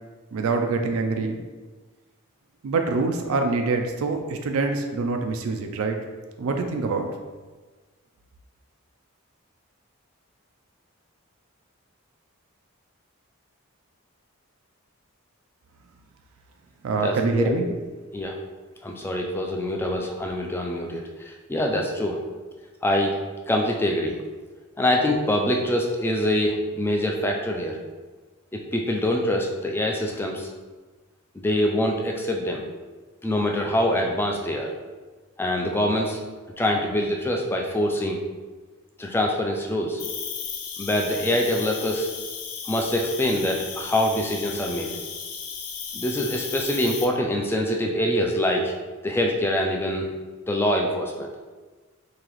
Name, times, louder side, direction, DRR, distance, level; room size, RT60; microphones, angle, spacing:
voice 1, 0.3-1.4 2.6-6.0 6.4-7.1 16.8-17.7, right 3 dB, 75° right, 4 dB, 0.4 m, -25 dB
voice 2, 17.0-17.8 18.1-18.4 18.8-22.2 22.8-23.2 23.5-24.2 24.8-27.8 28.5-30.5 31.3-32.6 33.2-34.7 35.4-36.2 36.6-38.2 39.0-40.0 40.8-42.1 42.7-45.0 45.9-48.7 49.0-50.1 50.5-51.3, left 1 dB, 10° left, 1 dB, 0.3 m, -24 dB
Cricket, 40.0-47.0, left 6 dB, 85° left, 0.5 m, -35 dB
3.9 x 2.8 x 3.0 m, 1.3 s
head